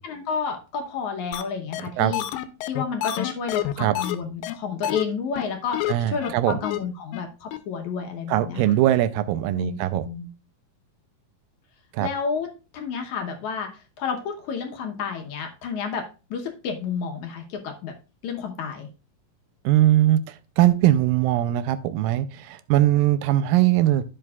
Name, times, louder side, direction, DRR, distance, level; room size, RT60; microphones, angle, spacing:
voice 1, 0.0-2.2 2.6-5.8 6.1-8.8 9.5-10.3 12.0-12.5 12.7-13.7 14.0-16.0 16.3-17.9 18.2-18.9, left 6 dB, 70° left, 4 dB, 2.1 m, -30 dB
sound 1, 1.3-1.4 1.7-1.8 2.1-4.2 4.4-4.5 4.8-5.0 5.4-5.5 5.7-5.9 6.2-6.3 6.6-6.8 7.1-7.2 7.5-7.6, left 14 dB, 90° left, 2.3 m, -27 dB
voice 2, 1.8-2.1 3.8-4.0 5.9-6.6 8.3-10.0 11.9-12.1 19.7-20.2 20.6-24.0, right 13 dB, 90° right, 12 dB, 2.3 m, -20 dB
14.5 x 5.2 x 2.3 m, 0.32 s
omnidirectional pair, 4.0 m